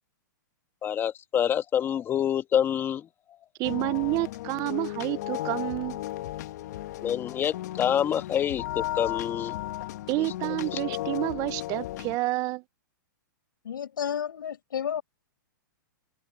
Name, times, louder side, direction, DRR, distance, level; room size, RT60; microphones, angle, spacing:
voice 1, 0.8-3.1 7.0-9.5 10.7-10.8, left 9 dB, 20° left, 1.7 m, -27 dB
sound 1, 3.6-12.2, left 15 dB, 55° left, 1.5 m, -35 dB
voice 2, 3.6-6.0 10.1-12.6, right 22 dB, 35° right, 0.9 m, -29 dB
voice 3, 13.6-15.0, left 9 dB, 80° left, 7.6 m, -31 dB
hypercardioid pair, 140°, 11 cm